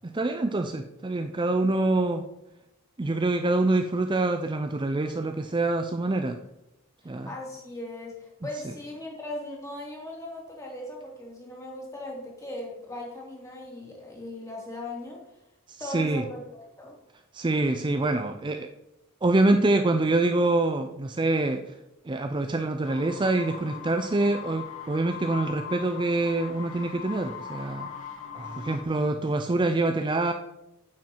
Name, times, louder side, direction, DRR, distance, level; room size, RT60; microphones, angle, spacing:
voice 1, 0.1-2.2 3.0-6.4 7.1-7.3 15.7-16.2 17.3-18.7 19.2-21.6 22.0-27.9 28.3-30.3, right 2 dB, 20° right, 7 dB, 0.5 m, -25 dB
voice 2, 7.0-15.2 15.8-16.9, left 1 dB, 15° left, -2 dB, 3.0 m, -38 dB
sound 1, 22.8-28.8, left 7 dB, 70° left, 2.1 m, -40 dB
9.2 x 7.7 x 4.5 m, 0.91 s
head